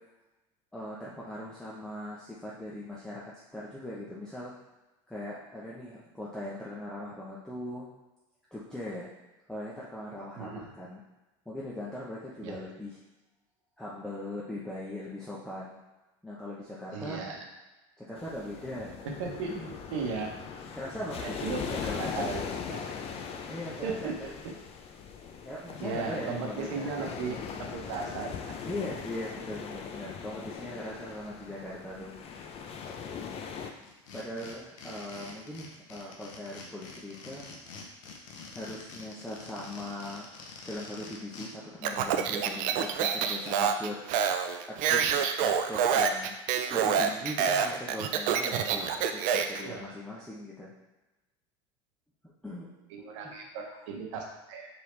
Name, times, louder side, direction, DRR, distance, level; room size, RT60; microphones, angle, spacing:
voice 1, 0.7-3.2 3.5-4.5 5.1-7.9 8.5-9.1 9.5-11.0 11.5-13.0 13.8-15.8 16.2-17.3 18.0-19.0 19.5-19.7 20.7-22.5 23.5-24.3 25.4-27.5 28.6-32.1 34.1-37.5 38.5-40.3 40.7-44.0 44.7-46.4 46.7-50.7 52.4-52.7 53.2-53.3, left 1 dB, 5° left, -7 dB, 0.8 m, -40 dB
voice 2, 10.4-10.7 12.4-12.5 16.9-17.4 19.2-19.5 19.9-20.4 21.2-21.6 22.0-22.8 23.8-24.1 24.4-24.5 25.8-27.4 27.7-28.5 48.7-48.9 49.6-50.0 52.9-54.7, right 4 dB, 80° right, 1 dB, 1.0 m, -36 dB
sound 1, 18.2-33.7, left 6 dB, 40° left, 0.5 m, -40 dB
sound 2, 33.8-41.5, left 4 dB, 85° left, 0.8 m, -46 dB
Speech, 41.8-49.6, right 7 dB, 55° right, 0.4 m, -27 dB
4.4 x 3.6 x 3.2 m, 1.1 s
supercardioid pair, 110°, 16 cm